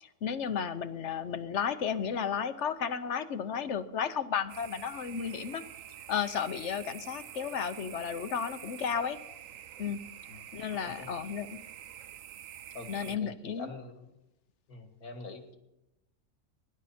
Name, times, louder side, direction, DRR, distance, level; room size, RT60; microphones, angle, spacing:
voice 1, 0.0-5.6 6.1-9.2 9.8-10.0 10.5-11.6 12.9-13.7, left 7 dB, 55° left, 12 dB, 1.1 m, -33 dB
sound 1, 4.5-13.2, right 10 dB, 65° right, 1.1 m, -47 dB
voice 2, 10.8-11.3 12.7-14.2 14.7-15.6, left 3 dB, 75° left, 6 dB, 2.4 m, -45 dB
23.5 x 11.0 x 4.3 m, 0.92 s
omnidirectional pair, 1.6 m